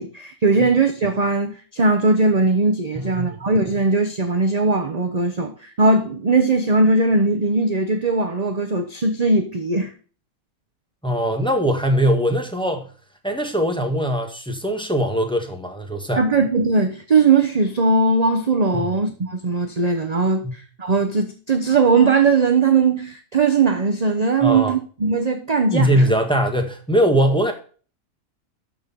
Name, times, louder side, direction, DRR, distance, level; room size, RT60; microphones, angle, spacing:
voice 1, 0.0-9.9 16.2-26.1, right 3 dB, 35° right, 0.9 m, -19 dB
voice 2, 11.0-12.9 13.2-16.2 18.7-18.8 20.4-20.5 24.4-24.7 25.7-27.5, equal, 5° left, 1.5 m, -21 dB
13.0 x 4.8 x 5.5 m
omnidirectional pair, 1.5 m